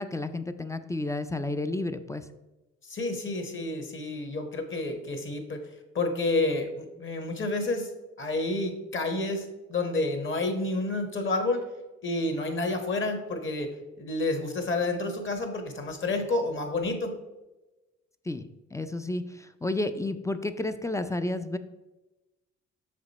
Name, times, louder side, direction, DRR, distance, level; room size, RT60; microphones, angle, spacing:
voice 1, 0.0-2.2 18.3-19.2 19.6-21.6, left 2 dB, 10° left, 10 dB, 0.3 m, -31 dB
voice 2, 2.8-5.7 5.9-7.9 8.2-11.6 12.0-17.2, left 2 dB, 40° left, 5 dB, 1.3 m, -29 dB
6.4 x 5.1 x 4.1 m, 1.1 s
cardioid pair, 90°, 30 cm